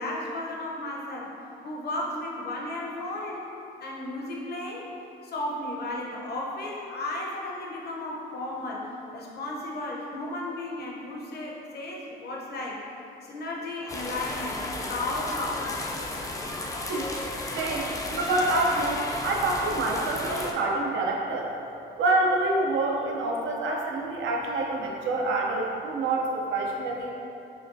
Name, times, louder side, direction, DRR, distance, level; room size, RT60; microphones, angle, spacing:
voice 1, 0.0-1.3 1.6-3.5 3.8-4.9 5.2-12.8 13.2-15.8, left 1 dB, 55° left, -3 dB, 0.8 m, -34 dB
sound 1, 13.9-20.5, left 2 dB, 15° left, 0.4 m, -33 dB
voice 2, 17.6-21.5 22.0-27.1, right 2 dB, 80° right, -1 dB, 0.6 m, -27 dB
6.6 x 2.3 x 2.6 m, 2.8 s
cardioid pair, 90°, 20 cm